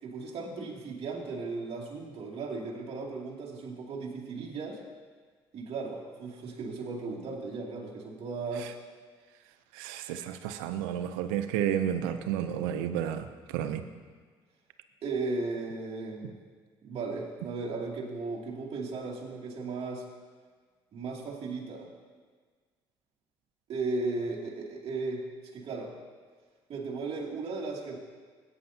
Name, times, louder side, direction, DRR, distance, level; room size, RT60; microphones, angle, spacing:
voice 1, 0.0-4.8 5.5-8.7 15.0-16.3 16.8-20.0 20.9-21.9 23.7-25.2 25.5-25.9 26.7-28.0, right 3 dB, 60° right, -3 dB, 2.6 m, -36 dB
voice 2, 9.7-13.8, right 10 dB, 90° right, 10 dB, 0.6 m, -31 dB
16.5 x 9.5 x 2.8 m, 1.5 s
supercardioid pair, 60°, 12 cm